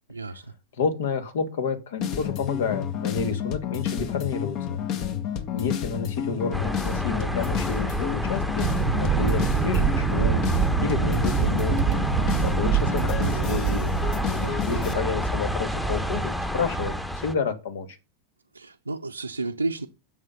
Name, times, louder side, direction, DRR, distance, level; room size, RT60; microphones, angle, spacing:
voice 1, 0.1-0.5 14.4-14.7 18.5-19.9, right 3 dB, 80° right, 0.8 m, -32 dB
voice 2, 0.8-4.8 5.5-8.7 9.0-10.4 10.8-12.0 12.4-13.8 14.7-18.0, left 5 dB, 55° left, 2.3 m, -30 dB
sound 1, 2.0-14.9, left 9 dB, 40° left, 1.7 m, -30 dB
sound 2, 6.5-17.3, equal, 5° left, 1.3 m, -29 dB
sound 3, 8.6-14.5, right 10 dB, 35° right, 0.7 m, -25 dB
9.6 x 7.6 x 6.9 m
figure-of-eight pair, 90°, 0 cm